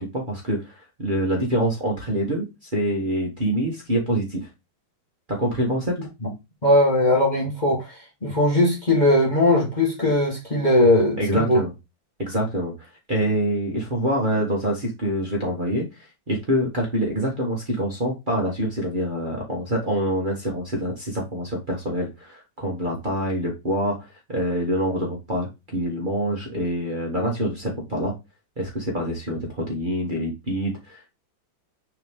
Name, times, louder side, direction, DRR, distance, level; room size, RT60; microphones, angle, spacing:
voice 1, 0.0-2.5 2.7-4.5 5.3-5.9 11.2-11.7 12.2-15.8 16.3-25.5 25.7-28.1 28.6-31.1, right 1 dB, 25° right, 1.7 m, -25 dB
voice 2, 6.6-11.6, left 1 dB, 25° left, 1.7 m, -19 dB
6.8 x 3.9 x 3.7 m
omnidirectional pair, 2.1 m